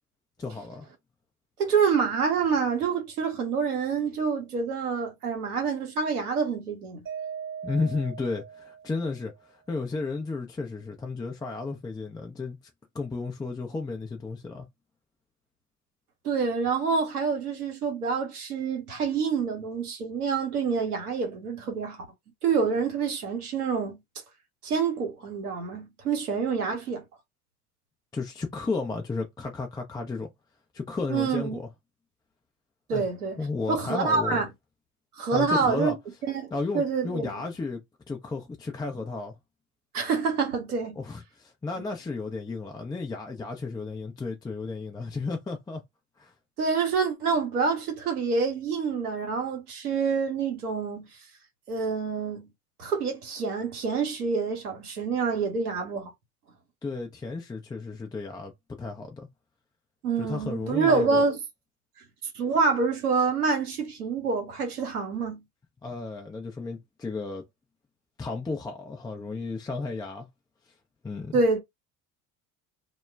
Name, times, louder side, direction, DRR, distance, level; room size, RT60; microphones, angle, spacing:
voice 1, 0.4-0.9 7.6-12.6 12.9-14.7 28.1-30.3 30.7-31.7 32.9-33.1 33.4-34.4 35.3-36.0 36.5-39.3 41.0-45.8 46.2-46.3 56.8-59.3 60.2-61.2 65.8-67.4 68.2-70.3 71.0-71.4, left 3 dB, 10° left, 0.4 m, -33 dB
voice 2, 1.6-7.0 16.2-22.0 22.4-24.0 24.6-27.0 31.1-31.6 32.9-33.4 33.7-34.5 35.2-36.0 36.2-37.3 39.9-41.0 46.6-51.1 51.7-52.5 52.8-56.1 60.0-61.4 62.3-65.4 71.3-71.6, right 5 dB, 85° right, 0.8 m, -27 dB
Mallet percussion, 7.1-9.3, right 7 dB, 30° right, 0.9 m, -39 dB
2.2 x 2.1 x 3.3 m
hypercardioid pair, 60°, 44 cm